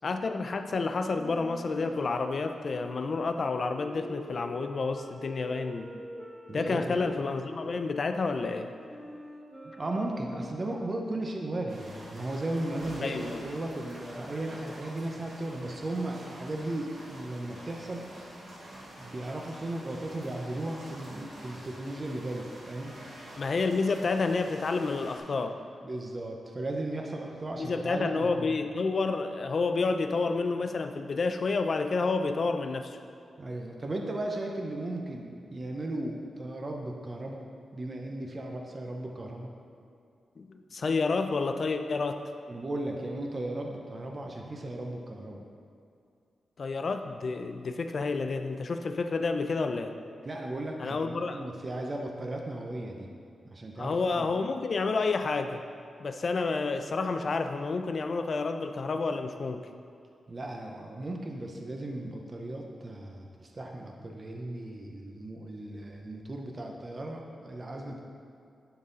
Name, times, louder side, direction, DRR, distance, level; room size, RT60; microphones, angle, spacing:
voice 1, 0.0-5.9 6.5-8.7 13.0-13.4 23.4-25.6 27.6-33.0 40.4-42.2 46.6-49.9 50.8-51.4 53.8-55.6 56.0-59.7, left 4 dB, 50° left, 7 dB, 0.4 m, -29 dB
sound 1, 1.1-7.8 8.3-11.2, equal, 5° right, 0.9 m, -45 dB
voice 2, 6.5-7.0 9.8-18.1 19.0-23.0 25.8-28.5 33.4-37.4 37.7-39.5 42.5-45.5 50.2-53.1 53.5-54.3 60.3-68.0, right 1 dB, 30° right, 1 dB, 0.6 m, -36 dB
sound 2, 11.7-25.2, right 1 dB, 90° right, 1.8 m, -47 dB
11.0 x 3.9 x 3.9 m, 2.4 s
wide cardioid pair, 115°, 0 cm